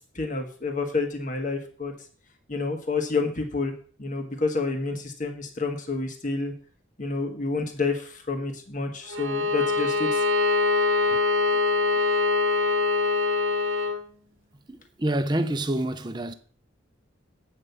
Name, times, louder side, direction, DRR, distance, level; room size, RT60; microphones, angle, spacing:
voice 1, 0.1-1.9 2.5-3.7 4.0-6.5 7.0-10.2, left 3 dB, 40° left, 1.5 m, -29 dB
Bowed string instrument, 9.1-14.0, left 3 dB, 90° right, 1.1 m, -23 dB
voice 2, 14.7-16.3, right 1 dB, 20° right, 0.7 m, -27 dB
8.9 x 5.3 x 6.9 m
head